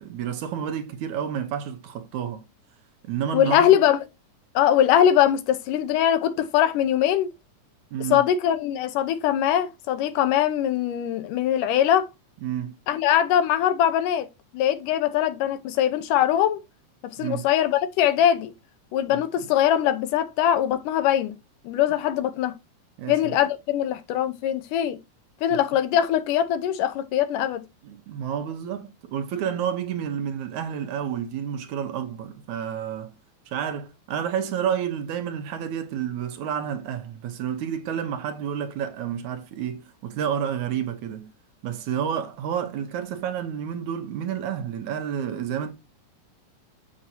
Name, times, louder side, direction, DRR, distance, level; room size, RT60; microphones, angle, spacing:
voice 1, 0.0-2.5 3.1-3.7 7.9-8.2 12.4-12.8 17.2-17.5 19.1-19.2 23.0-23.4 27.8-33.2 33.5-41.3 41.6-45.7, right 8 dB, 70° right, 2.2 m, -30 dB
voice 2, 3.3-4.0 4.6-7.3 8.1-12.1 12.9-14.3 14.5-16.6 17.2-18.5 18.9-21.4 21.6-22.6 23.1-25.0 25.4-27.6, left 10 dB, 80° left, 2.5 m, -22 dB
7.6 x 7.3 x 2.7 m
omnidirectional pair, 3.8 m